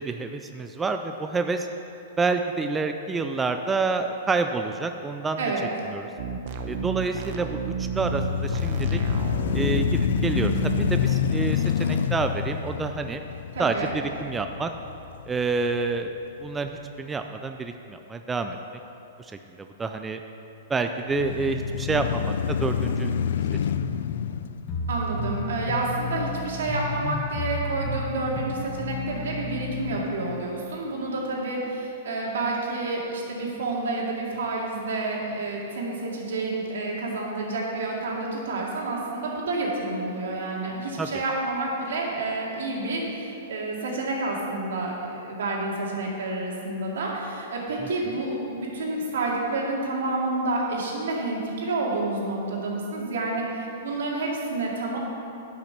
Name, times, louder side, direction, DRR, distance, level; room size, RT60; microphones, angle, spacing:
voice 1, 0.0-1.7 2.2-5.4 5.9-6.1 6.7-9.0 9.5-13.2 13.6-14.7 15.3-16.1 16.4-18.6 19.2-19.3 19.6-20.2 20.7-23.1 23.7-23.8 41.0-41.2, right 4 dB, 10° right, 6 dB, 0.3 m, -28 dB
sound 1, 6.2-11.0, right 6 dB, 50° right, 0.8 m, -31 dB
sound 2, 7.8-16.0 16.5-16.6 21.1-25.6, left 8 dB, 75° left, 0.4 m, -27 dB
voice 2, 13.5-13.9 24.9-55.0, right 2 dB, 85° right, -2 dB, 2.3 m, -29 dB
sound 3, 24.7-30.0, left 2 dB, 20° left, 1.3 m, -32 dB
10.5 x 5.9 x 5.8 m, 2.8 s
hypercardioid pair, 160°, 0 cm